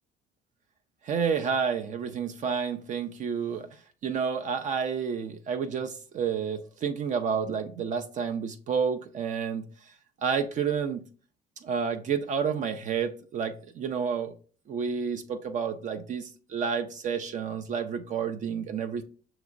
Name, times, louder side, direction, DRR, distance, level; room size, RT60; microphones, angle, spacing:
voice 1, 1.0-3.7 4.0-9.6 10.2-11.0 11.6-14.3 14.7-19.0, right 6 dB, 45° right, 7 dB, 0.4 m, -30 dB
6.0 x 3.0 x 2.4 m, 0.41 s
cardioid pair, 110°, 17 cm